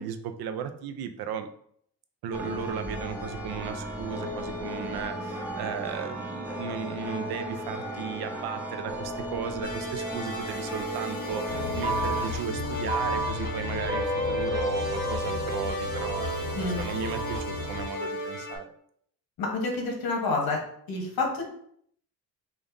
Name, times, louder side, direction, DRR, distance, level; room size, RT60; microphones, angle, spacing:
voice 1, 0.0-1.5 2.2-18.7, right 7 dB, 75° right, 9 dB, 0.5 m, -36 dB
sound 1, 2.3-12.3, equal, 10° left, 1.5 m, -35 dB
sound 2, 9.6-18.6, equal, 25° left, 0.9 m, -35 dB
sound 3, 11.5-17.8, left 1 dB, 30° right, 1.1 m, -31 dB
voice 2, 19.4-20.6 20.9-21.5, left 3 dB, 65° left, 1 dB, 1.1 m, -28 dB
5.1 x 2.5 x 2.6 m, 0.67 s
cardioid pair, 160°, 38 cm